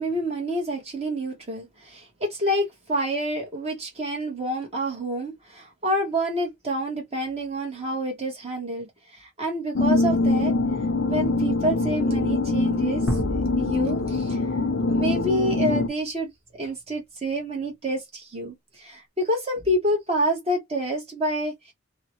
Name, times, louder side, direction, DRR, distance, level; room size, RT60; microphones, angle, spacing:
voice 1, 0.0-10.5 11.1-13.0 13.6-14.4 14.9-16.3 16.6-21.7, right 1 dB, 30° right, 0.9 m, -28 dB
sound 1, 9.7-15.9, left 3 dB, 85° left, 0.6 m, -23 dB
sound 2, 13.1-15.5, equal, 5° right, 0.7 m, -32 dB
2.8 x 2.0 x 2.9 m
head